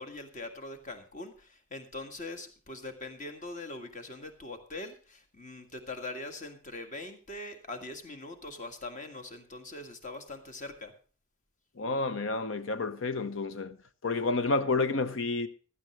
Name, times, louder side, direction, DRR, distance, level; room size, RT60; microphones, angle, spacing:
voice 1, 0.0-10.9, left 2 dB, 35° left, 1.7 m, -42 dB
voice 2, 11.8-13.8 14.0-15.5, left 3 dB, 65° left, 0.8 m, -30 dB
15.5 x 12.5 x 3.2 m
head